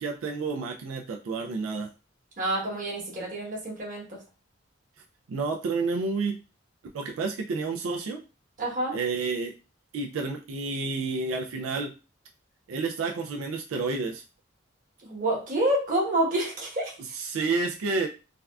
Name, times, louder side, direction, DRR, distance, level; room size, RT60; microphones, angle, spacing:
voice 1, 0.0-1.9 5.3-6.4 6.9-8.2 8.9-9.5 9.9-11.9 12.7-14.2 17.1-18.1, right 4 dB, 85° right, 2 dB, 0.4 m, -30 dB
voice 2, 2.4-4.2 8.6-9.0 15.0-17.0, right 1 dB, 40° right, -3 dB, 1.1 m, -28 dB
3.4 x 2.3 x 2.2 m, 0.33 s
head